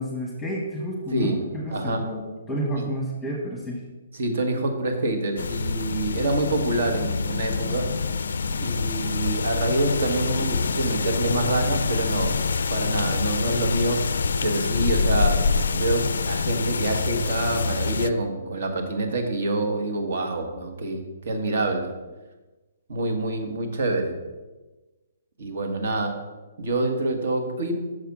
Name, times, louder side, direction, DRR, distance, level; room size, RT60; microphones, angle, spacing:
voice 1, 0.0-3.8, equal, 5° left, -2 dB, 1.1 m, -30 dB
voice 2, 1.1-1.4 1.7-2.1 2.8-2.9 4.1-7.9 8.6-12.4 12.7-14.2 14.4-21.9 22.9-24.2 25.4-26.2 26.6-27.7, right 2 dB, 60° right, 5 dB, 1.3 m, -26 dB
sound 1, 5.4-18.1, left 5 dB, 85° left, 0.3 m, -26 dB
6.5 x 5.0 x 6.0 m, 1.2 s
hypercardioid pair, 170°, 0 cm